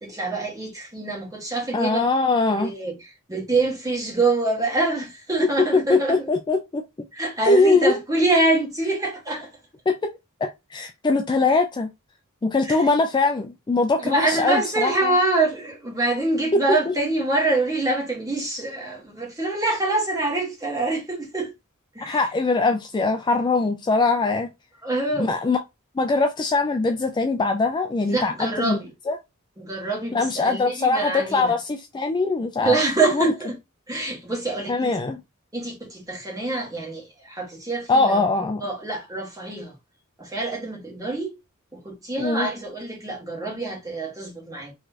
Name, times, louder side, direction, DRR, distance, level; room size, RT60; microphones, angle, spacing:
voice 1, 0.0-2.1 2.5-6.3 7.1-9.5 12.6-12.9 14.0-21.5 21.9-22.2 24.8-25.3 28.1-28.9 29.6-31.5 32.6-33.6 33.9-35.0 35.5-38.2 38.6-39.7 40.2-41.4 41.7-44.7, right 2 dB, 15° right, 1.5 m, -25 dB
voice 2, 1.7-2.7 5.7-6.8 7.4-8.0 9.9-10.1 10.4-11.9 12.4-15.1 16.5-16.9 22.0-24.5 25.2-25.6 26.0-28.8 29.1-29.2 30.1-32.8 33.1-33.3 34.7-35.2 37.9-38.6 42.2-42.5, left 3 dB, 20° left, 0.3 m, -22 dB
3.9 x 3.1 x 2.8 m
head